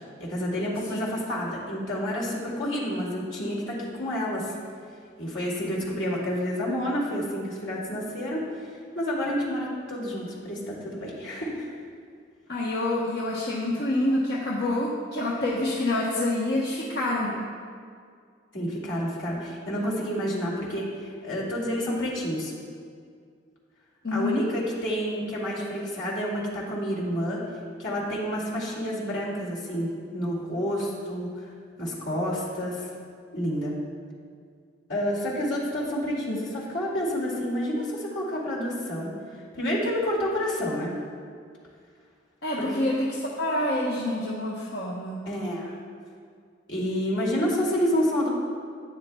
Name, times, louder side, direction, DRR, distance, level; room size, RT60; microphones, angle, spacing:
voice 1, 0.2-4.5 5.2-11.7 18.5-22.5 24.1-27.4 27.8-31.5 31.8-32.9 33.3-33.7 34.9-39.1 39.5-40.9 42.6-42.8 45.3-45.8 46.7-48.3, equal, 80° left, -4 dB, 2.4 m, -29 dB
voice 2, 12.5-17.3 24.0-24.5 36.2-36.4 42.4-45.3, left 1 dB, 60° left, -5 dB, 1.0 m, -27 dB
12.0 x 9.4 x 2.3 m, 2.1 s
head